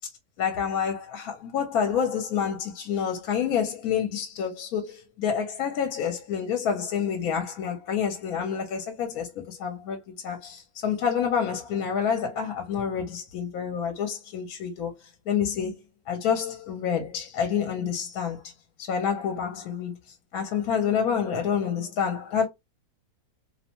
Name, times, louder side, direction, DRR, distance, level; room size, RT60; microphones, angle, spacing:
voice 1, 0.4-15.8 16.1-18.5 18.8-19.9 20.3-22.5, left 7 dB, 70° left, 1.0 m, -28 dB
2.7 x 2.1 x 2.8 m
omnidirectional pair, 1.7 m